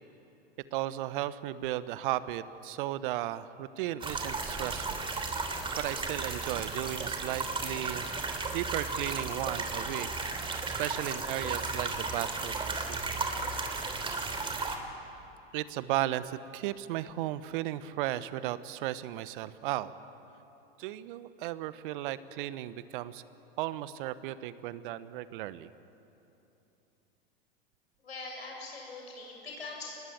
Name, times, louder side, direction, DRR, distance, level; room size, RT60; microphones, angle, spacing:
voice 1, 0.7-5.0 5.8-8.1 8.5-10.5 10.8-13.2 15.5-19.9 20.8-23.2 23.6-25.7, right 14 dB, 55° right, 15 dB, 1.1 m, -35 dB
sound 1, 4.0-14.8, right 3 dB, 15° right, 3.0 m, -34 dB
voice 2, 28.0-30.0, left 3 dB, 85° left, -1 dB, 7.7 m, -42 dB
26.5 x 20.5 x 8.8 m, 3.0 s
hypercardioid pair, 95°, 30 cm